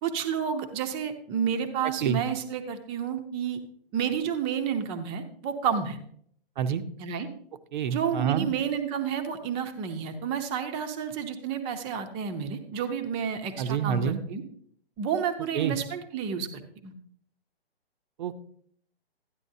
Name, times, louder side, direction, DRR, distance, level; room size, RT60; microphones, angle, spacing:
voice 1, 0.0-3.6 3.9-6.0 7.0-7.3 7.9-14.4 15.0-16.5 16.8-16.9, right 7 dB, 15° right, 8 dB, 0.7 m, -30 dB
voice 2, 7.7-8.5 13.6-14.2 15.5-15.8 18.2-18.3, right 8 dB, 50° right, 11 dB, 0.8 m, -27 dB
12.5 x 9.8 x 2.7 m, 0.63 s
hypercardioid pair, 145°, 30 cm